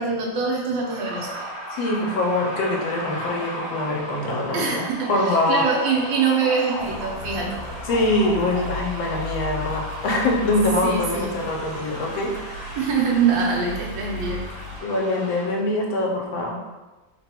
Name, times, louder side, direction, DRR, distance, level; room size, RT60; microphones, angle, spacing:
voice 1, 0.0-1.4 4.5-7.8 10.8-11.4 12.8-14.4, right 5 dB, 80° right, -2 dB, 1.4 m, -24 dB
sound 1, 0.8-15.6, equal, 50° right, 0.8 m, -36 dB
voice 2, 1.7-5.6 7.9-12.3 14.8-16.6, left 2 dB, 90° left, 0 dB, 1.5 m, -24 dB
sound 2, 6.8-14.8, left 3 dB, 70° left, 0.9 m, -36 dB
3.6 x 2.2 x 4.2 m, 1.2 s
omnidirectional pair, 2.0 m